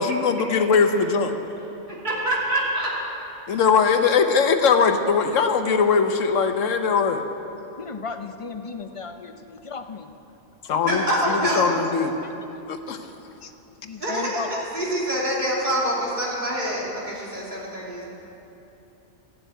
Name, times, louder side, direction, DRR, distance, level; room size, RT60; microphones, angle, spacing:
voice 1, 0.0-1.3 3.5-7.2 10.7-12.1 12.9-13.0, left 5 dB, 90° left, 7 dB, 1.3 m, -20 dB
voice 2, 1.9-2.9 10.8-11.6 14.0-14.4 14.7-18.1, right 1 dB, 35° right, -5 dB, 3.1 m, -25 dB
voice 3, 7.8-10.1 11.2-11.4 13.9-14.7, left 4 dB, 40° left, 7 dB, 0.4 m, -34 dB
13.5 x 8.0 x 9.2 m, 3.0 s
omnidirectional pair, 1.3 m